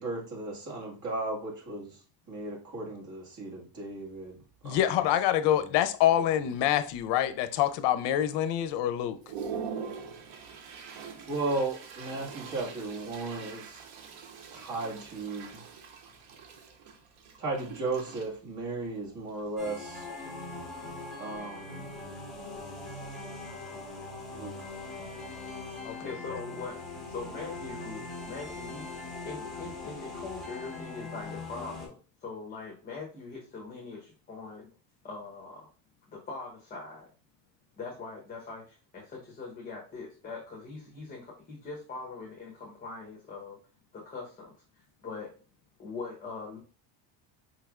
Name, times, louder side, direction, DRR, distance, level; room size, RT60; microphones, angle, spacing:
voice 1, 0.0-2.0 2.3-4.4 4.6-4.9 5.4-5.7 11.3-13.8 14.5-15.6 17.4-20.1 21.2-21.9 24.3-24.5 25.0-25.2, right 2 dB, 40° right, 1.7 m, -35 dB
Toilet flush, 3.9-4.0 4.5-4.8 5.1-5.6 6.1-6.2 6.5-7.3 7.7-7.8 8.4-8.5 8.9-20.9, right 6 dB, 85° right, 0.9 m, -44 dB
voice 2, 4.6-9.2 25.8-26.0, left 11 dB, 65° left, 0.6 m, -26 dB
sound 1, 19.6-31.9, left 3 dB, ahead, 1.1 m, -41 dB
voice 3, 26.0-28.8 29.2-34.7 35.0-35.7 36.1-37.1 37.8-43.6 43.9-44.5 45.0-45.3 45.8-46.6, left 4 dB, 20° left, 0.9 m, -42 dB
5.0 x 3.3 x 2.4 m
cardioid pair, 155°, 45 cm